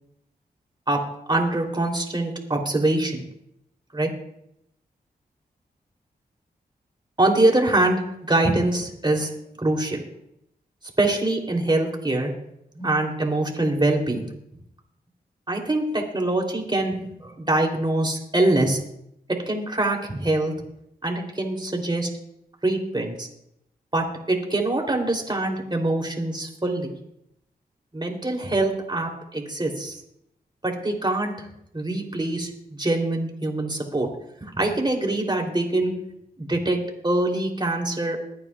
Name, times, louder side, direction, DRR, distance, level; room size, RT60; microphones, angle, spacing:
voice 1, 1.3-3.3 3.9-4.1 7.2-9.3 9.6-10.0 11.0-12.3 12.8-14.3 15.5-18.8 19.5-20.5 21.0-22.1 22.6-23.3 23.9-26.9 27.9-30.0 30.6-31.5 31.7-34.1 34.4-35.9 36.4-36.8 37.0-38.2, right 2 dB, 25° right, 1 dB, 3.3 m, -24 dB
21.5 x 9.6 x 2.4 m, 0.79 s
cardioid pair, 50°, 17 cm